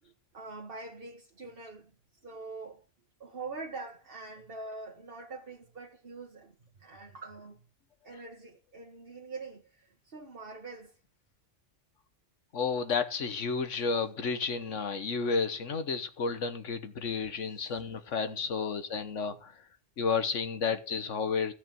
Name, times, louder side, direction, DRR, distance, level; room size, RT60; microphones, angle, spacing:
voice 1, 0.0-1.9 2.2-2.8 3.2-7.6 8.0-11.0 17.3-17.7 18.3-18.4 19.2-19.4 21.0-21.1, right 3 dB, 50° right, 1.8 m, -44 dB
voice 2, 12.5-19.5 20.0-21.5, left 5 dB, 85° left, 1.6 m, -31 dB
16.5 x 5.8 x 9.1 m
omnidirectional pair, 1.2 m